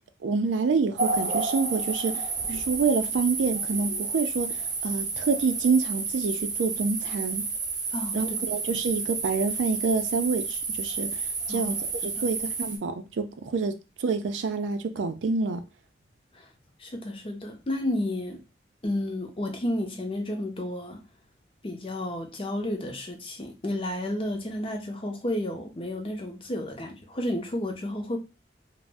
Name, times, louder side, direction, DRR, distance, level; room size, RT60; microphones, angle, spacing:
voice 1, 0.2-7.4 8.1-15.6, right 4 dB, 85° right, 0.4 m, -27 dB
sound 1, 1.0-12.8, right 4 dB, 45° right, 0.6 m, -31 dB
voice 2, 16.8-18.4 18.8-21.0 21.6-28.2, left 1 dB, 30° left, 0.5 m, -31 dB
2.5 x 2.0 x 3.3 m
head